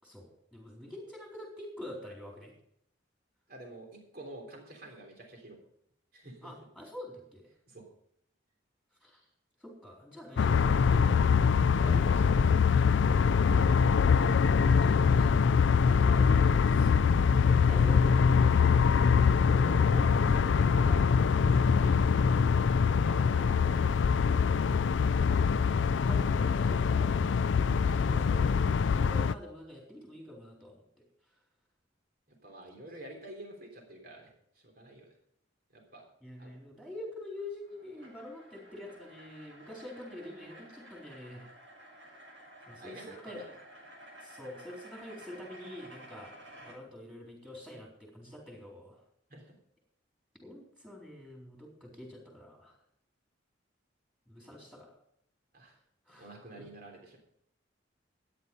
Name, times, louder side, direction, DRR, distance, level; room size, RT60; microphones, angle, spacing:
voice 1, 0.0-2.5 6.4-7.4 9.0-9.2 9.6-11.6 14.6-15.5 15.7-16.9 17.5-18.2 25.7-30.8 36.2-41.5 42.7-43.4 44.2-46.4 46.6-49.0 50.4-52.7 54.3-54.9 56.1-56.7, left 1 dB, 5° right, -1 dB, 4.0 m, -47 dB
voice 2, 3.5-5.6 6.1-6.5 7.7-7.9 11.8-12.7 14.1-14.8 17.4-18.0 18.4-18.8 19.1-21.9 23.0-24.1 27.8-28.6 32.4-34.3 34.6-35.1 35.7-36.0 36.4-36.5 42.8-43.5 49.3-49.5 55.5-55.7 56.1-57.2, right 1 dB, 50° right, 2 dB, 3.5 m, -48 dB
sound 1, 10.4-29.3, left 6 dB, 70° left, 0.4 m, -24 dB
sound 2, 37.3-46.8, equal, 80° right, 7.0 m, -53 dB
13.5 x 9.7 x 5.4 m, 0.72 s
head